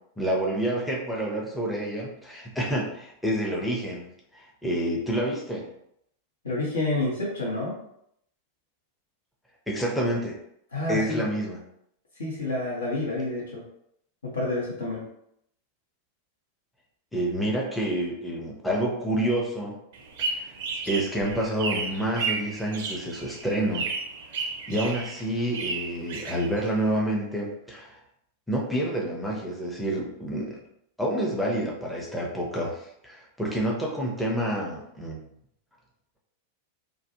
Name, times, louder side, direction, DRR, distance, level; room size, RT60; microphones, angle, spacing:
voice 1, 0.2-4.1 4.3-5.7 9.7-10.4 10.9-11.6 17.1-19.7 20.4-20.5 20.9-23.9 24.7-28.0 28.5-30.6 31.0-35.3, right 1 dB, 5° left, -3 dB, 0.6 m, -28 dB
voice 2, 6.4-7.8 10.7-11.3 12.2-13.6 14.2-15.0, left 2 dB, 70° left, -5 dB, 0.8 m, -29 dB
sound 1, 19.9-27.0, right 4 dB, 55° right, 0.4 m, -33 dB
2.4 x 2.0 x 2.7 m, 0.74 s
figure-of-eight pair, 90°, 0 cm